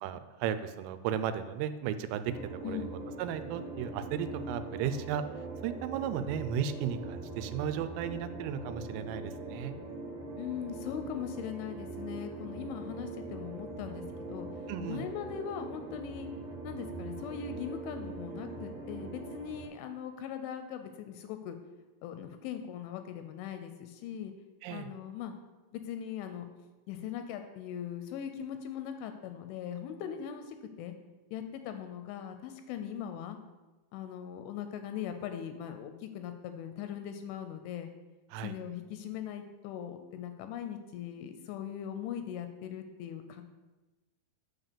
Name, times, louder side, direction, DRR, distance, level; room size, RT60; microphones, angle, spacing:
voice 1, 0.0-2.4 2.7-2.9 3.2-5.2 5.6-9.7 14.7-15.0 24.6-24.9 38.3-38.6, right 9 dB, 85° right, 11 dB, 3.1 m, -35 dB
sound 1, 2.2-19.7, right 2 dB, 55° right, 3.2 m, -42 dB
voice 2, 10.4-14.0 14.3-14.5 14.9-16.3 16.6-21.6 22.0-24.3 24.7-25.4 25.7-26.5 26.9-30.9 31.3-33.4 33.9-37.9 38.4-43.4, left 9 dB, 85° left, 8 dB, 2.8 m, -40 dB
9.0 x 4.0 x 6.7 m, 1.2 s
omnidirectional pair, 5.7 m